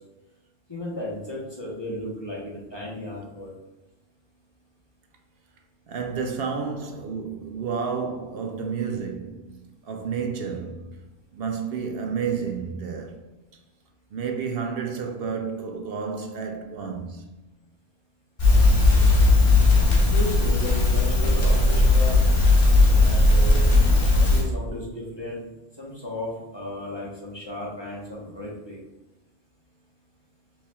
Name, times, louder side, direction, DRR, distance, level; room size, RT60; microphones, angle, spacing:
voice 1, 0.7-3.5 19.7-22.2 23.0-23.7 24.1-25.5 25.8-28.8, left 1 dB, 25° left, 0.9 m, -34 dB
voice 2, 5.9-11.0 11.3-13.2 14.1-17.3, right 6 dB, 70° right, 0.8 m, -31 dB
Crackle, 18.4-24.4, left 2 dB, 55° left, 1.4 m, -17 dB
5.4 x 3.4 x 2.2 m
omnidirectional pair, 1.1 m